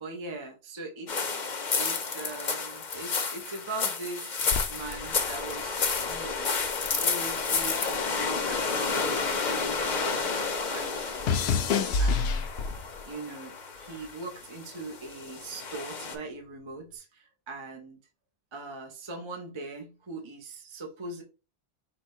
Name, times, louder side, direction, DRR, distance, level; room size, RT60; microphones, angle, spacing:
voice 1, 0.0-4.4 4.7-6.5 7.0-18.0 18.5-21.2, right 3 dB, 35° right, 0.7 m, -41 dB
sound 1, 1.1-16.2, left 5 dB, 50° left, 0.8 m, -31 dB
sound 2, 4.5-7.0 7.3-9.9 10.2-13.0 13.8-14.1, left 4 dB, 85° left, 0.9 m, -30 dB
4.7 x 2.2 x 4.3 m
omnidirectional pair, 1.0 m